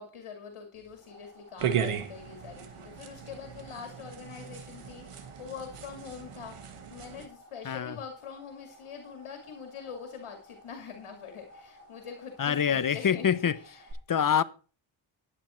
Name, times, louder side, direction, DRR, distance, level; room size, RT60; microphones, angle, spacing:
voice 1, 0.0-13.9, left 6 dB, 75° left, 2.6 m, -44 dB
sound 1, 0.7-13.9, equal, 45° right, 7.3 m, -55 dB
sound 2, 1.6-7.3, right 8 dB, 80° right, 1.6 m, -36 dB
voice 2, 7.6-8.0 12.4-13.6 14.1-14.4, left 8 dB, 40° left, 0.8 m, -25 dB
11.0 x 9.8 x 4.4 m
cardioid pair, 85°, 50 cm